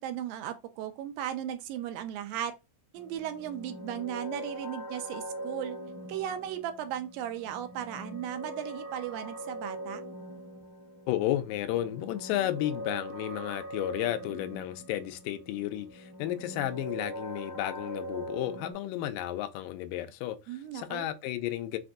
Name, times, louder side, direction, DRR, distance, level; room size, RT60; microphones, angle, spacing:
voice 1, 0.0-2.5 2.9-5.8 6.1-10.0 20.5-21.1, right 10 dB, 85° right, 2.2 m, -36 dB
sound 1, 2.9-18.7, right 1 dB, 30° left, 0.8 m, -42 dB
voice 2, 11.1-21.8, left 13 dB, 80° left, 2.1 m, -33 dB
5.9 x 2.6 x 2.5 m
omnidirectional pair, 4.1 m